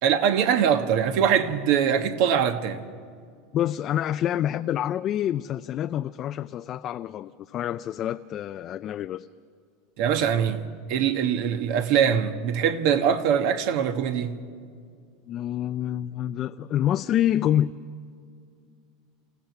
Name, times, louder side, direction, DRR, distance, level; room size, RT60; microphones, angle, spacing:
voice 1, 0.0-2.8 10.0-14.3, right 8 dB, 60° right, 1.2 m, -23 dB
voice 2, 3.5-9.3 15.3-17.8, left 11 dB, 40° left, 0.4 m, -27 dB
28.0 x 15.5 x 6.0 m
supercardioid pair, 130°, 0 cm